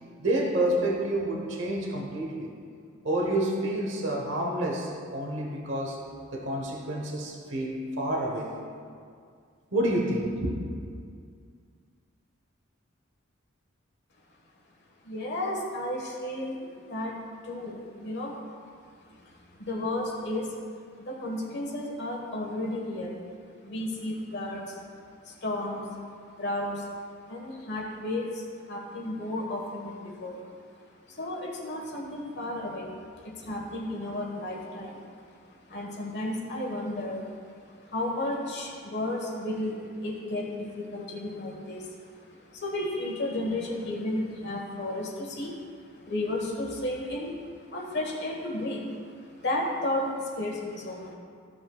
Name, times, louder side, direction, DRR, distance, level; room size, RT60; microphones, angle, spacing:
voice 1, 0.2-2.5 3.0-6.0 6.3-8.5 9.7-10.6, right 1 dB, 60° right, -1 dB, 1.1 m, -28 dB
voice 2, 15.0-17.1 17.4-18.4 19.2-20.6 21.1-23.2 23.6-24.8 25.2-26.0 26.4-26.9 27.3-30.5 31.1-32.9 33.2-35.4 35.7-37.4 37.8-51.2, left 1 dB, 55° left, -1 dB, 1.4 m, -33 dB
14.5 x 6.3 x 2.4 m, 2.2 s
head